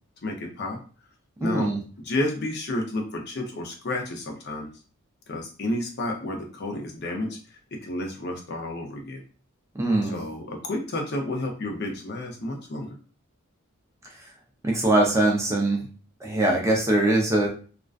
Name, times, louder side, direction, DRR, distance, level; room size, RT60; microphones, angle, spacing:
voice 1, 0.2-0.8 1.4-1.7 2.0-4.7 5.3-7.4 7.7-9.2 10.0-13.0, left 1 dB, 50° left, 2 dB, 0.6 m, -31 dB
voice 2, 1.4-1.8 9.8-10.2 14.6-15.8 16.2-17.5, right 2 dB, 15° right, -1 dB, 0.4 m, -22 dB
2.4 x 2.1 x 2.3 m, 0.38 s
head